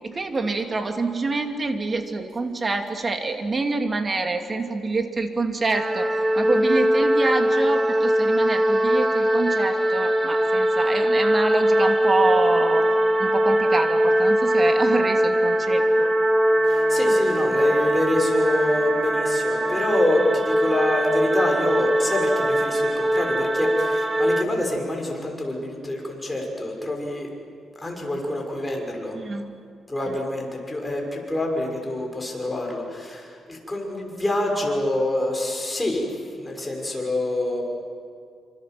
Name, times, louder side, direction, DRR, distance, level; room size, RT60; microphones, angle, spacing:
voice 1, 0.0-6.1 6.4-12.9 13.2-16.1 29.1-29.6 30.1-30.2, right 3 dB, 30° right, 5 dB, 2.8 m, -26 dB
sound 1, 5.7-24.4, equal, 15° right, 1.2 m, -21 dB
Wind instrument woodwind instrument, 16.5-20.5, left 5 dB, 40° left, 2.5 m, -41 dB
voice 2, 16.7-27.3 27.8-29.2 29.9-36.1 36.4-37.8, left 1 dB, 15° left, 1 dB, 6.2 m, -26 dB
27.5 x 26.0 x 7.8 m, 2.3 s
cardioid pair, 100°, 0 cm